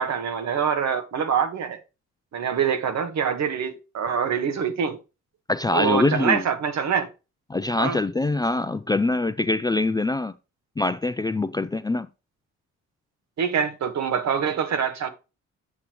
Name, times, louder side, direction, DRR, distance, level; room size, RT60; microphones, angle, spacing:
voice 1, 0.0-1.8 2.3-5.0 5.7-7.1 7.8-8.0 13.4-15.1, right 7 dB, 60° right, 1.4 m, -25 dB
voice 2, 5.5-6.4 7.5-10.3 10.8-12.1, left 2 dB, 15° left, 0.4 m, -24 dB
8.3 x 6.7 x 3.0 m
cardioid pair, 90°, 30 cm